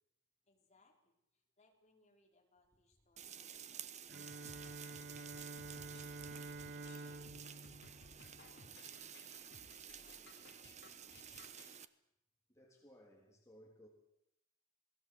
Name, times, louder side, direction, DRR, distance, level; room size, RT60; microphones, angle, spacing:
voice 1, 0.5-11.6, left 2 dB, 30° left, 2 dB, 4.5 m, -76 dB
sound 1, 3.2-11.9, right 9 dB, 30° right, 0.9 m, -52 dB
Bowed string instrument, 4.1-9.0, right 2 dB, 45° right, 1.2 m, -50 dB
sound 2, 4.3-11.8, left 2 dB, 55° left, 3.7 m, -61 dB
voice 2, 12.5-13.9, equal, 15° left, -1 dB, 3.4 m, -61 dB
28.5 x 19.5 x 8.0 m, 0.81 s
head